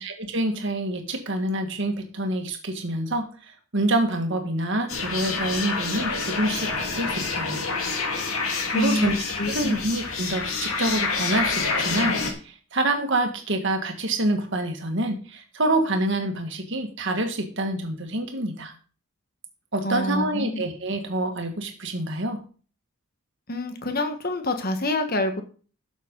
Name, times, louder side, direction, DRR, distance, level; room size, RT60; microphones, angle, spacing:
voice 1, 0.0-3.3 3.7-7.6 8.7-9.1 9.5-12.2 12.4-18.7 19.7-22.4, right 1 dB, 55° right, 4 dB, 1.8 m, -27 dB
sound 1, 4.9-12.3, left 4 dB, 70° left, 2.0 m, -27 dB
voice 2, 8.7-9.8 19.8-20.6 23.5-25.4, left 1 dB, 40° left, 6 dB, 1.4 m, -27 dB
12.0 x 7.2 x 3.9 m, 0.39 s
head